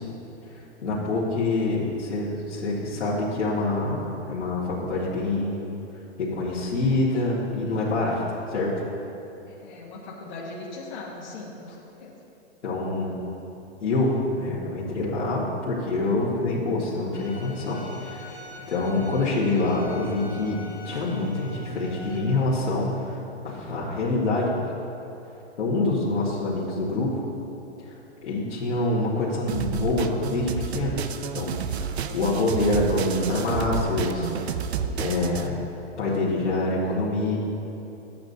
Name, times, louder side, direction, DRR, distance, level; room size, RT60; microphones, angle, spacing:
voice 1, 0.5-5.6 6.2-8.2 8.5-8.7 12.6-13.2 13.8-18.4 18.7-20.6 20.8-23.2 23.4-24.7 25.6-27.2 28.2-31.0 31.3-31.5 31.8-34.6 35.0-35.7 36.0-37.4, left 2 dB, 85° left, -8 dB, 2.0 m, -26 dB
voice 2, 9.4-12.1 26.3-26.5, left 3 dB, 40° left, -4 dB, 1.3 m, -40 dB
Bowed string instrument, 17.1-22.2, left 1 dB, 15° left, 1.1 m, -44 dB
sound 1, 29.5-35.5, right 7 dB, 65° right, 0.6 m, -30 dB
13.5 x 8.7 x 2.8 m, 2.9 s
hypercardioid pair, 165°, 35 cm